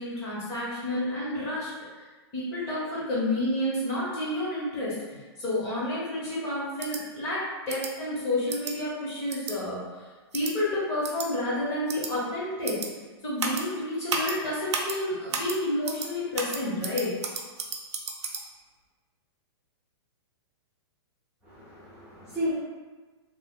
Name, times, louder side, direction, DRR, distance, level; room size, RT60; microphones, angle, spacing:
voice 1, 0.0-1.7 2.3-9.8 10.3-12.9 13.2-17.2, left 1 dB, 20° left, -8 dB, 0.8 m, -30 dB
sound 1, 6.8-7.0 7.7-7.9 8.5-8.7 9.3-9.5 10.3-10.5 11.0-11.3 11.9-12.1 12.6-12.9 13.4-13.6 14.1-14.3 14.7-15.0 15.3-15.6 15.8-16.1 16.3-18.4, right 4 dB, 80° right, 0.5 m, -32 dB
voice 2, 21.4-22.5, left 1 dB, 5° right, -15 dB, 0.4 m, -33 dB
2.9 x 2.1 x 3.5 m, 1.3 s
hypercardioid pair, 170°, 14 cm